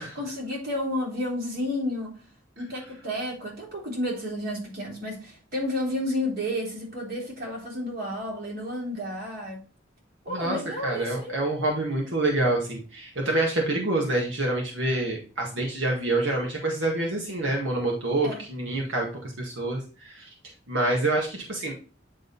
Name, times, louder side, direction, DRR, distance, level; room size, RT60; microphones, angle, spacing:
voice 1, 0.1-2.1 2.6-9.6 10.2-11.4 18.2-18.4, left 1 dB, 55° right, -3 dB, 3.5 m, -31 dB
voice 2, 10.3-20.3 20.7-21.7, right 2 dB, 75° right, -1 dB, 1.9 m, -27 dB
9.3 x 3.8 x 4.0 m, 0.35 s
head